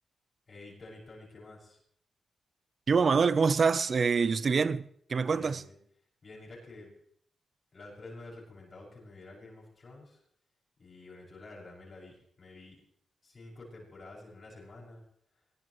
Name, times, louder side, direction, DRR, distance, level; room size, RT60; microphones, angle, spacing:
voice 1, 0.5-1.8 5.3-5.7 6.2-6.9 7.7-10.2 10.8-12.8 13.2-15.0, left 2 dB, 40° left, 6.5 m, -49 dB
voice 2, 2.9-4.8 5.1-5.6, right 5 dB, 45° right, 0.7 m, -25 dB
22.5 x 20.5 x 3.2 m
cardioid pair, 105°, 0 cm